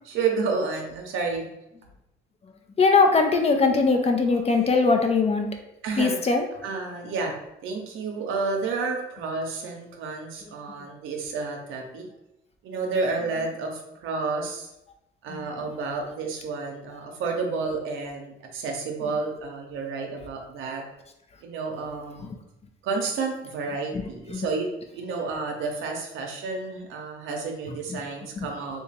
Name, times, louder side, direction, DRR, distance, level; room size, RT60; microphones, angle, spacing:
voice 1, 0.0-1.5 5.8-6.2 6.6-7.3 7.6-12.1 12.6-14.7 15.2-20.8 21.4-22.3 22.8-24.7 24.9-28.8, right 4 dB, 85° right, 2 dB, 0.7 m, -30 dB
voice 2, 2.8-5.5 6.0-6.4 23.9-24.0 24.3-24.5 28.4-28.5, left 4 dB, 30° left, 4 dB, 0.5 m, -20 dB
2.9 x 2.4 x 4.1 m, 0.89 s
cardioid pair, 90°, 20 cm